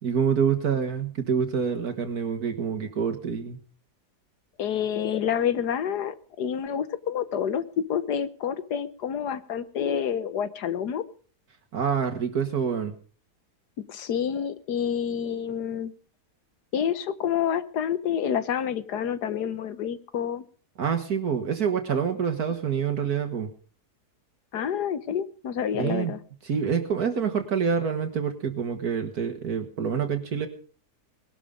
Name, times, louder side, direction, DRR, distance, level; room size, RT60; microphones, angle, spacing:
voice 1, 0.0-3.6 11.7-12.9 20.8-23.5 25.7-26.1 26.4-30.5, right 7 dB, 65° right, 6 dB, 1.9 m, -26 dB
voice 2, 4.6-11.0 13.9-15.9 16.7-20.4 24.5-26.2, left 8 dB, 75° left, 14 dB, 1.6 m, -28 dB
19.5 x 12.5 x 5.1 m, 0.42 s
omnidirectional pair, 1.8 m